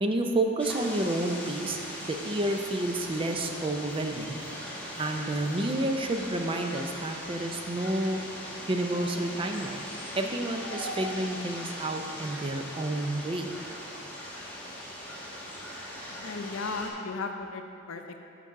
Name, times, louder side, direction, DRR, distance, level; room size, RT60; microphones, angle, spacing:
voice 1, 0.0-4.4 5.0-8.2 8.7-9.9 10.1-13.5, right 1 dB, 25° right, 4 dB, 0.5 m, -30 dB
sound 1, 0.6-16.9, equal, 10° left, 1.1 m, -40 dB
voice 2, 16.1-18.2, left 3 dB, 80° left, 5 dB, 0.6 m, -36 dB
8.4 x 6.8 x 3.7 m, 2.6 s
head